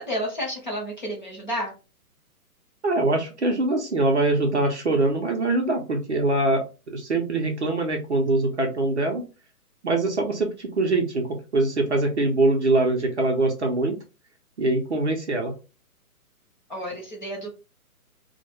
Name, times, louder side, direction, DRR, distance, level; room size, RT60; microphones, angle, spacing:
voice 1, 0.0-1.7 16.7-17.5, equal, 30° left, -3 dB, 0.7 m, -31 dB
voice 2, 2.8-9.2 9.8-14.0 14.6-15.5, right 2 dB, 50° right, 2 dB, 0.5 m, -23 dB
2.2 x 2.1 x 3.0 m, 0.31 s
hypercardioid pair, 180°, 46 cm